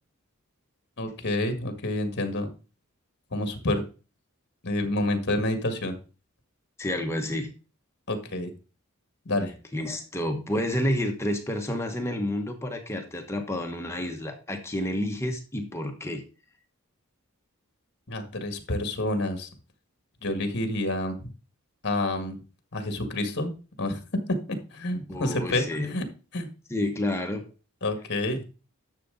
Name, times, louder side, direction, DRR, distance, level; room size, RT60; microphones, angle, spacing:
voice 1, 1.0-2.5 3.3-3.8 4.6-5.9 8.1-8.5 9.3-9.5 18.1-19.5 20.2-21.3 21.8-22.4 22.7-23.5 23.8-24.0 24.5-26.1 26.3-26.5 27.8-28.5, left 1 dB, 50° left, 7 dB, 1.8 m, -28 dB
voice 2, 6.8-7.5 9.7-16.2 25.1-25.9 26.7-27.4, left 1 dB, 10° left, 3 dB, 1.1 m, -29 dB
11.0 x 6.7 x 3.9 m, 0.35 s
head